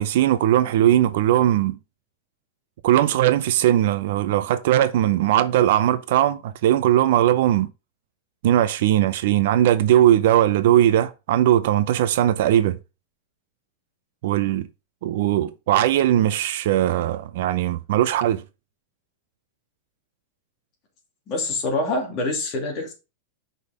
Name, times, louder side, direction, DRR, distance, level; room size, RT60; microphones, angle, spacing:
voice 1, 0.0-1.8 2.8-7.7 8.4-12.8 14.2-14.7 15.0-18.4, right 12 dB, 50° right, 0.6 m, -19 dB
voice 2, 21.3-22.9, left 2 dB, 25° left, 2.5 m, -25 dB
6.3 x 5.3 x 4.9 m
supercardioid pair, 180°, 0 cm